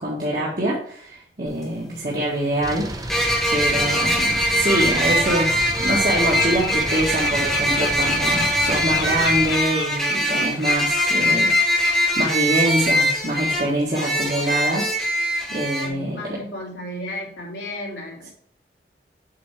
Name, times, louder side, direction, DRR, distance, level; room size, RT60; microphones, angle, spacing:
voice 1, 0.0-2.8 3.5-16.1, right 1 dB, 50° right, -6 dB, 1.5 m, -25 dB
sound 1, 1.5-1.6 3.1-15.9, equal, ahead, 1.2 m, -22 dB
sound 2, 2.6-9.6, right 1 dB, 20° right, 0.6 m, -32 dB
Bird, 3.1-3.2 3.7-4.1 4.3-13.1 13.4-13.5 13.9-14.1, left 7 dB, 70° left, 0.7 m, -33 dB
voice 2, 15.8-18.3, left 1 dB, 85° left, -3 dB, 2.5 m, -34 dB
8.3 x 3.5 x 4.6 m, 0.63 s
head